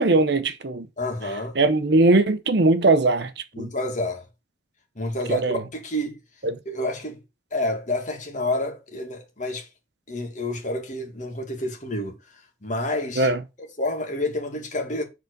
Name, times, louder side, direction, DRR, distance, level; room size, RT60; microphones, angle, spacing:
voice 1, 0.0-0.9 1.6-3.3 3.6-3.7 5.3-5.6 6.4-6.6 13.2-13.4, right 2 dB, 55° right, 0.8 m, -20 dB
voice 2, 1.0-1.6 3.5-4.2 5.0-6.2 6.7-7.2 7.5-9.7 10.1-12.2 12.6-13.3 13.8-15.0, left 1 dB, 40° left, 2.1 m, -29 dB
7.6 x 3.9 x 6.6 m
head